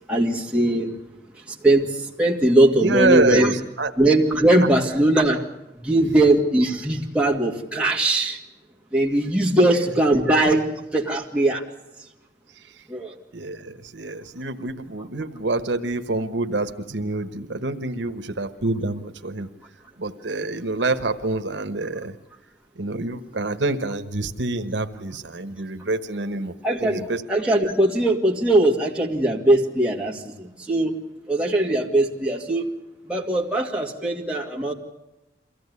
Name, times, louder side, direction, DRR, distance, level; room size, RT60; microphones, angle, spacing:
voice 1, 0.1-0.9 1.6-3.5 4.0-5.4 5.8-8.4 8.9-11.6 12.9-13.1 26.6-31.0 31.3-32.6 33.1-34.7, right 1 dB, 5° right, -2 dB, 2.3 m, -20 dB
voice 2, 2.7-3.9 9.6-9.9 10.5-10.6 13.3-19.5 20.0-22.1 22.8-26.5 26.8-27.2, right 2 dB, 85° right, 9 dB, 1.2 m, -26 dB
23.5 x 16.0 x 9.7 m, 0.95 s
head